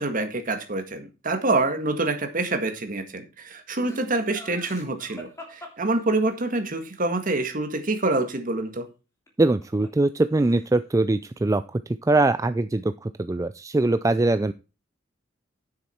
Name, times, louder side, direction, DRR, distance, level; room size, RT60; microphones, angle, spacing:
voice 1, 0.0-8.9, right 2 dB, 45° right, 7 dB, 1.8 m, -26 dB
Laughter, 3.8-6.5 9.3-10.1 10.3-10.9, equal, 15° left, 3.0 m, -44 dB
voice 2, 9.4-14.5, right 2 dB, 15° right, 11 dB, 0.4 m, -22 dB
9.7 x 7.2 x 4.4 m, 0.31 s
head